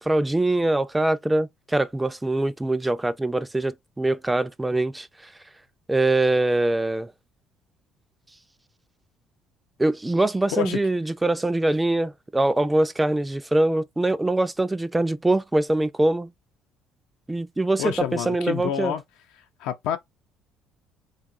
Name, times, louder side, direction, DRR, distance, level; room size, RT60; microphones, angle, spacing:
voice 1, 0.0-5.3 5.9-7.1 9.8-16.3 17.3-18.9, right 2 dB, 10° right, 0.3 m, -23 dB
voice 2, 17.8-19.0 19.6-20.0, left 10 dB, 80° left, 0.5 m, -28 dB
2.9 x 2.3 x 2.5 m
supercardioid pair, 75°, 0 cm